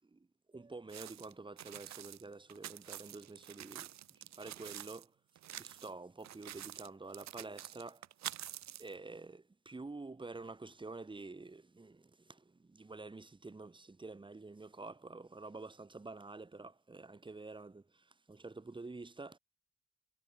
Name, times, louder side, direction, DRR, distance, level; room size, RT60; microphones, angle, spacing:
voice 1, 0.0-5.1 5.6-8.4 8.8-19.4, right 3 dB, 15° right, 1.8 m, -49 dB
sound 1, 0.9-5.0 5.4-5.9 6.2-8.9, right 12 dB, 65° right, 0.8 m, -48 dB
cardioid pair, 140°, 30 cm